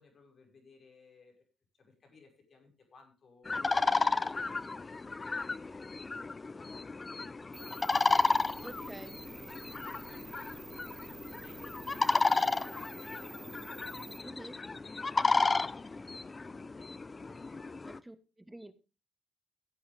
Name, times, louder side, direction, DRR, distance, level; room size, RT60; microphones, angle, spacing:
voice 1, 0.0-1.5 1.7-4.8 5.6-10.4 11.1-14.3 14.8-17.7, left 4 dB, 45° left, 3 dB, 5.5 m, -62 dB
sound 1, 3.5-18.0, left 3 dB, 25° left, 0.6 m, -33 dB
sound 2, 7.5-14.2, right 5 dB, 45° right, 1.6 m, -51 dB
voice 2, 8.6-9.2 14.2-14.6 17.9-18.7, right 1 dB, 10° right, 12 dB, 1.4 m, -48 dB
16.0 x 8.4 x 3.5 m, 0.30 s
cardioid pair, 90°, 0 cm